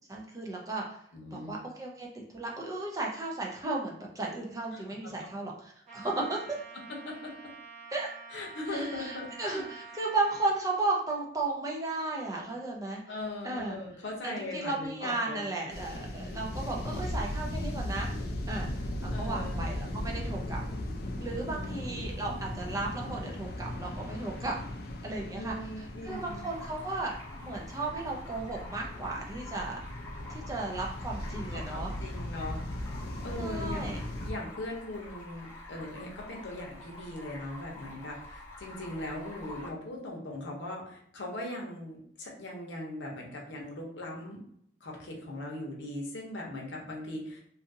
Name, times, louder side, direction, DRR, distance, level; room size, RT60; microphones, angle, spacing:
voice 1, 0.1-1.0 1.3-2.1 2.3-5.5 5.9-6.4 7.9-8.1 8.7-13.0 13.4-13.8 14.2-18.1 18.5-18.7 19.0-20.6 21.2-24.6 25.0-25.5 26.0-27.2 27.4-29.8 30.3-31.9 33.4-34.0, right 2 dB, 20° right, -1 dB, 0.4 m, -34 dB
voice 2, 1.1-1.6 4.7-4.8 7.0-7.3 8.3-9.6 13.1-15.4 19.1-19.6 21.5-22.0 25.2-26.4 31.5-32.6 33.2-33.9 34.2-44.4 44.8-47.4, left 1 dB, 80° left, -1 dB, 0.8 m, -39 dB
Trumpet, 5.9-10.5, right 3 dB, 40° right, 0.8 m, -48 dB
sound 1, 15.7-34.3, left 1 dB, 55° left, 0.4 m, -37 dB
Stream, 26.1-39.7, left 2 dB, 15° left, 1.1 m, -47 dB
2.7 x 2.5 x 2.6 m, 0.69 s
head